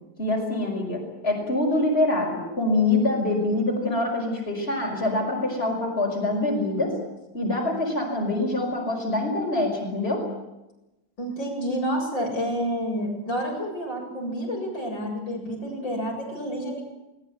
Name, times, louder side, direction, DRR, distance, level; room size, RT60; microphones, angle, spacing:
voice 1, 0.2-7.0 7.3-10.2, left 2 dB, 30° left, 0 dB, 5.7 m, -25 dB
voice 2, 11.2-16.8, equal, 85° left, -1 dB, 8.4 m, -29 dB
20.5 x 20.5 x 9.4 m, 0.95 s
omnidirectional pair, 2.0 m